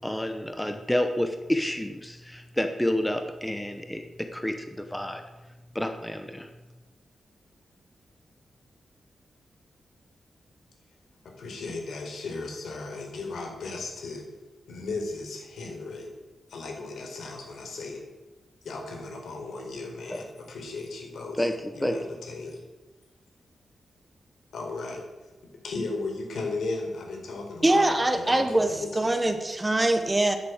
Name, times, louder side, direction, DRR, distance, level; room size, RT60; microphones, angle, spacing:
voice 1, 0.0-5.2 5.7-6.5 20.1-20.2 21.4-22.0, left 1 dB, 5° left, 6 dB, 1.0 m, -29 dB
voice 2, 11.2-14.3 14.7-16.1 16.5-18.0 18.6-21.5 21.8-22.6 24.5-25.0 25.6-29.3, left 3 dB, 80° left, 2 dB, 4.7 m, -36 dB
voice 3, 27.6-30.4, right 2 dB, 15° right, 7 dB, 1.2 m, -23 dB
14.0 x 10.5 x 8.2 m, 1.1 s
wide cardioid pair, 175°, 0 cm